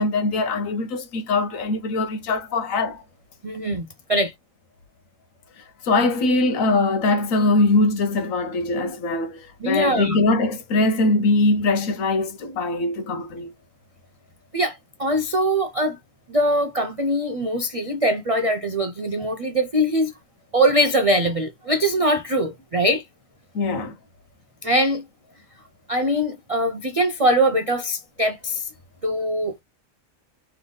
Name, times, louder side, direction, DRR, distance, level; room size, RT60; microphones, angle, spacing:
voice 1, 0.0-3.0 5.6-13.5 23.5-24.0, left 2 dB, 75° left, 1.2 m, -22 dB
voice 2, 3.4-4.3 9.6-10.2 14.5-16.0 16.3-20.1 20.5-23.0 24.6-25.0 25.9-28.7 29.0-29.6, right 1 dB, 50° right, 0.4 m, -22 dB
3.4 x 3.3 x 3.9 m
omnidirectional pair, 1.5 m